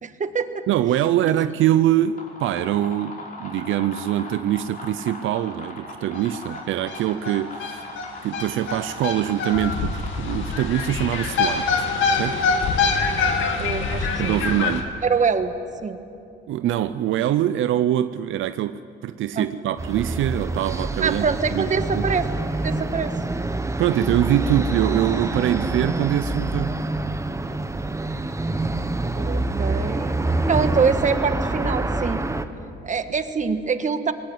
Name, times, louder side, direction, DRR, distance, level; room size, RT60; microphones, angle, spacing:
voice 1, 0.0-0.6 1.2-1.3 13.6-14.4 15.0-15.5 15.8-16.0 19.3-19.5 21.0-22.2 22.5-23.1 29.2-30.2 30.5-32.2 32.8-34.1, right 5 dB, 40° right, 9 dB, 1.5 m, -24 dB
voice 2, 0.7-7.9 8.2-11.9 12.2-12.4 14.2-14.9 16.5-22.0 23.8-26.8, right 12 dB, 80° right, 12 dB, 0.6 m, -23 dB
sound 1, 2.0-12.3, left 2 dB, 45° left, 5.7 m, -39 dB
sound 2, 6.2-6.3 6.5-6.6 6.9-14.8, left 4 dB, 80° left, 2.3 m, -24 dB
sound 3, 19.8-32.4, right 2 dB, 15° right, 1.2 m, -26 dB
20.0 x 19.0 x 9.5 m, 2.6 s
cardioid pair, 90°, 20 cm